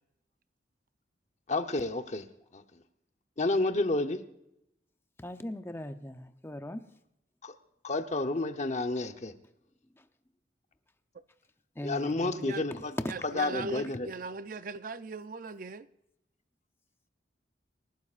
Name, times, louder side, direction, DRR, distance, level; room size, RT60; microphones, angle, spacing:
voice 1, 1.5-2.3 2.5-2.6 3.4-4.2 7.4-7.5 7.8-9.3 11.8-12.9 13.3-14.1, left 2 dB, 40° left, 0.9 m, -30 dB
voice 2, 5.2-6.9 10.0-10.1 11.8-13.1, left 1 dB, 15° left, 0.7 m, -39 dB
voice 3, 12.2-12.7 13.1-15.9, right 3 dB, 50° right, 0.5 m, -39 dB
27.5 x 12.0 x 2.5 m
head